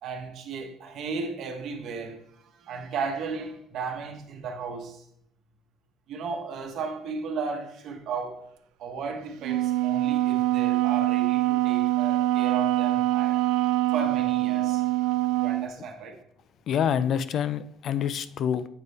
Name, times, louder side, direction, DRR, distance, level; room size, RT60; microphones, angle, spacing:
voice 1, 0.0-2.2 2.6-5.0 6.1-8.5 8.8-13.4 13.9-14.8 15.4-16.2, right 4 dB, 55° right, 1.0 m, -35 dB
Wind instrument woodwind instrument, 9.4-15.7, right 16 dB, 85° right, 0.3 m, -24 dB
voice 2, 16.7-18.7, left 8 dB, 50° left, 0.3 m, -26 dB
7.9 x 4.1 x 3.5 m
cardioid pair, 145°, 0 cm